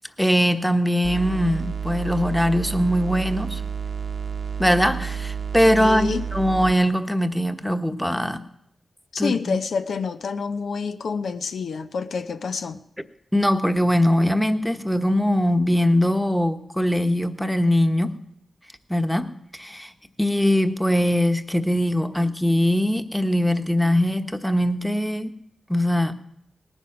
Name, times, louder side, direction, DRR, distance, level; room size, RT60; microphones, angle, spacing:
voice 1, 0.2-3.6 4.6-8.4 9.2-9.6 13.3-18.2 18.9-19.9 20.2-25.4 25.7-26.1, equal, ahead, 1.2 m, -21 dB
sound 1, 1.0-6.8, right 7 dB, 65° right, 0.9 m, -30 dB
voice 2, 5.7-6.3 9.1-12.8, left 5 dB, 75° left, 0.7 m, -28 dB
18.5 x 9.9 x 6.0 m
cardioid pair, 50°, 0 cm